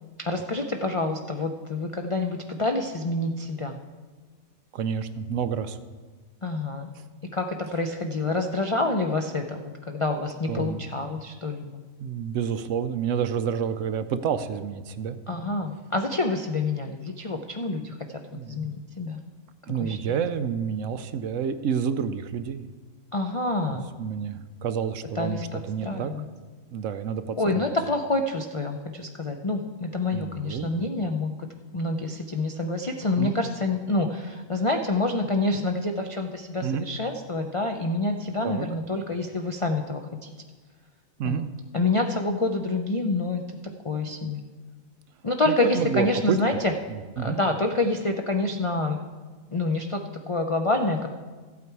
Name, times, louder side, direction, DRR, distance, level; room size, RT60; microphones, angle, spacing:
voice 1, 0.2-3.8 6.4-6.9 7.2-11.7 15.3-17.9 18.3-19.2 19.8-20.2 23.1-23.8 25.1-26.3 27.4-40.3 41.2-41.4 41.7-44.4 45.2-46.7 47.2-49.0 49.5-51.1, left 2 dB, 50° left, 4 dB, 0.3 m, -27 dB
voice 2, 4.7-5.8 10.5-10.8 12.0-15.2 18.3-18.6 19.7-22.7 24.0-26.1 26.7-27.4 30.1-30.7 33.2-33.4 36.6-36.9 38.4-38.7 41.2-41.5 45.6-46.4 47.2-47.4, right 7 dB, 70° right, 11 dB, 0.9 m, -29 dB
13.5 x 8.4 x 4.6 m, 1.4 s
omnidirectional pair, 1.4 m